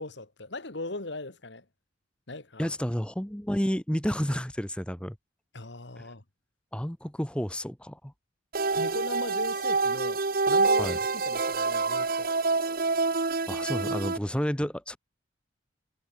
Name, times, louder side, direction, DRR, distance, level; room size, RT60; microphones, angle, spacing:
voice 1, 0.0-1.7 2.3-2.8 5.5-6.2 8.7-12.3, left 2 dB, 65° left, 2.0 m, -38 dB
voice 2, 2.6-5.1 6.0-6.1 6.7-8.1 10.8-11.0 13.5-15.0, equal, 5° left, 1.1 m, -30 dB
sound 1, 8.5-14.2, right 3 dB, 50° right, 1.1 m, -27 dB
head